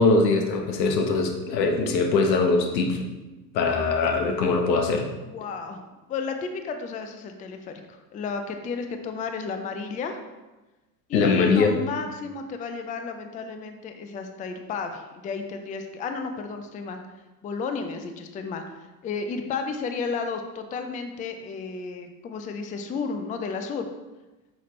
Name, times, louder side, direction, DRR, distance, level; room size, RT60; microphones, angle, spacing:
voice 1, 0.0-3.0 3.5-5.0 11.1-11.8, left 3 dB, 80° left, 4 dB, 1.2 m, -22 dB
voice 2, 5.3-5.8 6.1-10.2 11.1-17.0 17.4-23.9, left 5 dB, 15° left, 6 dB, 0.4 m, -33 dB
6.0 x 5.7 x 3.2 m, 1.1 s
hypercardioid pair, 95°, 49 cm